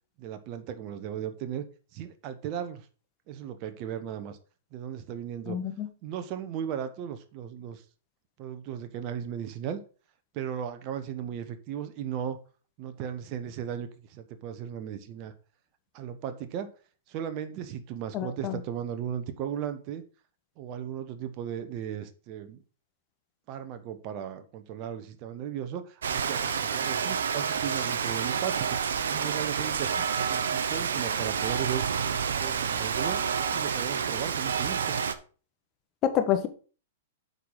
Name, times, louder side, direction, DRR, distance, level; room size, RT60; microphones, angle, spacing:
voice 1, 0.2-1.6 1.9-2.9 3.3-4.4 4.7-5.6 6.0-7.8 8.4-9.8 10.3-12.4 12.8-15.3 15.9-16.7 17.1-20.0 20.6-22.6 23.5-28.8 29.1-29.9 30.3-31.8 32.4-33.2 33.5-34.8, right 9 dB, 40° right, 10 dB, 1.1 m, -36 dB
voice 2, 5.5-5.9 18.1-18.6 36.0-36.5, left 10 dB, 35° left, 7 dB, 1.5 m, -27 dB
Rain, 26.0-35.1, right 7 dB, 75° right, 0.9 m, -29 dB
8.1 x 4.8 x 5.6 m, 0.38 s
hypercardioid pair, 115°, 0 cm